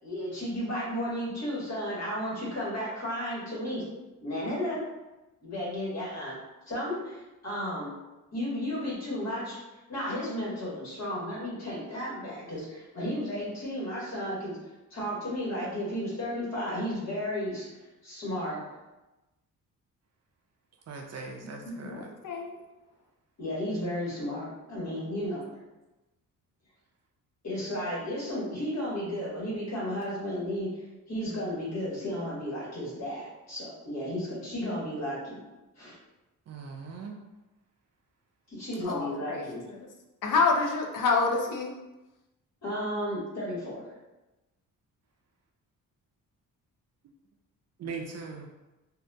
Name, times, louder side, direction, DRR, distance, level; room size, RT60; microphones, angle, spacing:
voice 1, 0.0-3.9 4.2-4.8 5.4-6.4 6.7-7.9 8.3-9.6 9.9-14.6 14.9-17.7 18.0-18.6 21.1-21.8 23.4-25.6 27.4-30.8 31.1-35.4 35.8-36.0 38.5-39.6 42.6-43.8, equal, 50° left, -7 dB, 1.4 m, -33 dB
voice 2, 20.9-22.1 36.5-37.2 47.8-48.5, right 4 dB, 50° right, 2 dB, 0.4 m, -40 dB
voice 3, 21.8-22.5 38.8-39.5 40.2-41.7, left 4 dB, 65° left, 1 dB, 0.6 m, -27 dB
2.7 x 2.5 x 2.2 m, 1.0 s
cardioid pair, 105°, 34 cm